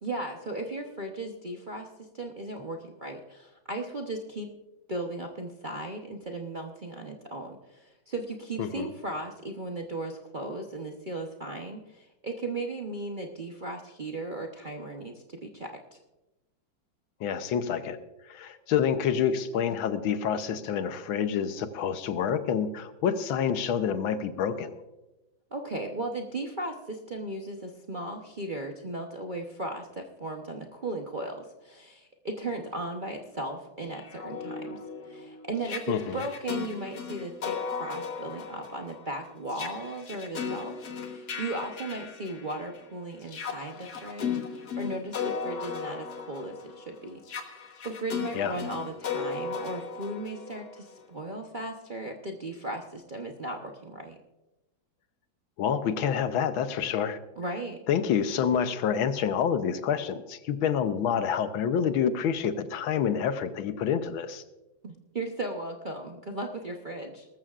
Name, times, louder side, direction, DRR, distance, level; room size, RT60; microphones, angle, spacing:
voice 1, 0.0-4.6 4.9-16.0 25.5-34.8 35.0-40.8 41.1-47.2 47.5-54.2 57.4-57.8 64.8-67.3, right 2 dB, 40° right, 1 dB, 0.7 m, -36 dB
voice 2, 8.6-8.9 17.2-18.0 18.3-24.8 35.9-36.2 48.3-48.6 55.6-57.2 57.9-64.4, left 8 dB, 85° left, 10 dB, 1.6 m, -28 dB
sound 1, 33.9-42.8 43.2-51.0, left 6 dB, 55° left, 1.8 m, -36 dB
19.5 x 14.0 x 2.5 m, 1.0 s
omnidirectional pair, 2.1 m